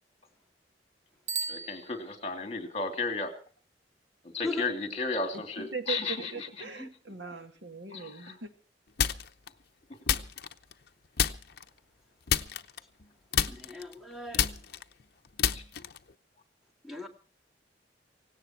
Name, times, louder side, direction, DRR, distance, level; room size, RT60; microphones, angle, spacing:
Bicycle bell, 1.2-2.6, right 5 dB, 40° right, 1.1 m, -37 dB
voice 1, 1.5-3.3 4.3-6.3 6.6-6.7 7.9-8.4 10.1-10.2 15.5-15.6, left 3 dB, 35° left, 5 dB, 2.8 m, -34 dB
voice 2, 5.3-8.5, right 4 dB, 75° right, 6 dB, 2.2 m, -40 dB
sound 1, 9.0-9.5 10.1-10.9 11.2-11.7 12.3-13.1 13.3-16.1, left 8 dB, 55° left, 0.8 m, -29 dB
voice 3, 13.5-14.5 16.8-17.1, left 2 dB, ahead, 2 dB, 2.2 m, -38 dB
17.5 x 17.5 x 4.5 m, 0.42 s
head